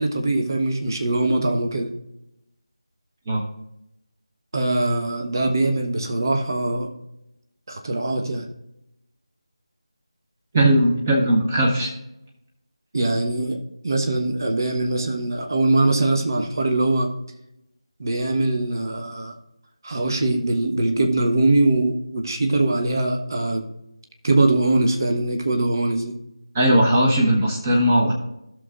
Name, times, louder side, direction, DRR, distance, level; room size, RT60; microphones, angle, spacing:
voice 1, 0.0-1.9 4.5-6.9 7.7-8.4 12.9-13.6 13.8-17.1 18.0-19.3 19.8-23.6 24.2-26.1, right 2 dB, 40° right, 3 dB, 1.2 m, -22 dB
voice 2, 10.5-11.9 26.5-28.1, right 1 dB, 20° right, -2 dB, 1.1 m, -18 dB
16.0 x 6.4 x 2.5 m, 0.86 s
figure-of-eight pair, 165°, 3 cm